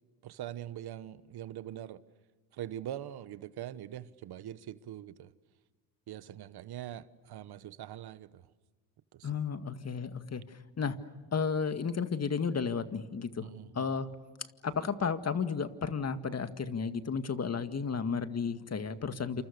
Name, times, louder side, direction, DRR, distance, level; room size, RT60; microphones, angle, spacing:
voice 1, 0.2-2.0 2.5-5.3 6.1-8.4 9.1-9.3 13.4-14.0, right 11 dB, 65° right, 1.3 m, -43 dB
voice 2, 9.2-10.4 10.8-11.0 11.3-13.5 13.7-14.1 14.6-19.4, left 5 dB, 35° left, 2.0 m, -33 dB
28.5 x 28.0 x 6.7 m
supercardioid pair, 80°, 42 cm